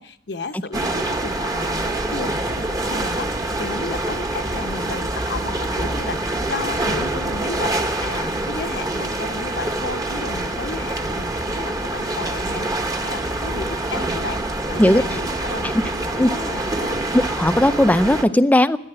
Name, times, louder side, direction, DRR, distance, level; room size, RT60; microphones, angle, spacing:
voice 1, 0.0-17.0, left 3 dB, 70° left, 8 dB, 1.0 m, -33 dB
sound 1, 0.7-18.2, right 2 dB, 20° right, 1.1 m, -25 dB
voice 2, 17.1-18.8, left 1 dB, 10° left, 12 dB, 0.5 m, -16 dB
14.0 x 11.0 x 8.8 m, 0.75 s
head